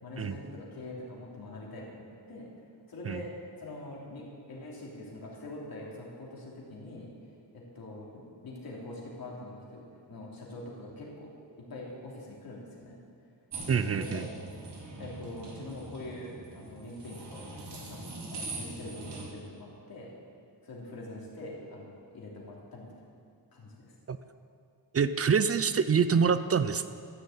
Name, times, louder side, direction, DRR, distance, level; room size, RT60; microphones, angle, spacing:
voice 1, 0.0-2.5 2.9-3.3 3.6-7.1 7.5-8.1 8.4-9.8 10.1-11.3 11.6-12.9 13.9-14.3 15.0-18.1 18.3-20.1 20.6-23.0 23.5-23.9, left 2 dB, 55° left, -4 dB, 3.0 m, -44 dB
sound 1, 13.5-19.2, right 2 dB, 65° right, 2.7 m, -42 dB
voice 2, 13.7-14.3 24.1-24.2 24.9-26.9, right 6 dB, 35° right, 12 dB, 0.4 m, -26 dB
13.5 x 6.6 x 8.6 m, 2.4 s
wide cardioid pair, 145°, 43 cm